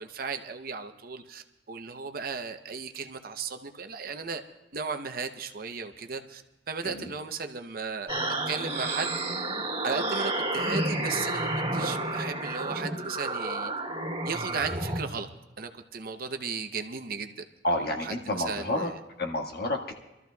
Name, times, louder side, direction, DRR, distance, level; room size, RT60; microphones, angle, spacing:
voice 1, 0.0-4.4 4.7-8.1 8.5-9.1 9.8-13.7 14.2-15.3 15.6-17.3 17.7-19.0, right 5 dB, 55° right, 7 dB, 0.8 m, -35 dB
sound 1, 8.1-15.0, right 2 dB, 30° right, 2.7 m, -30 dB
voice 2, 17.6-18.9 19.2-19.9, left 1 dB, 60° left, 2 dB, 1.6 m, -30 dB
26.5 x 13.5 x 2.3 m, 1.0 s
head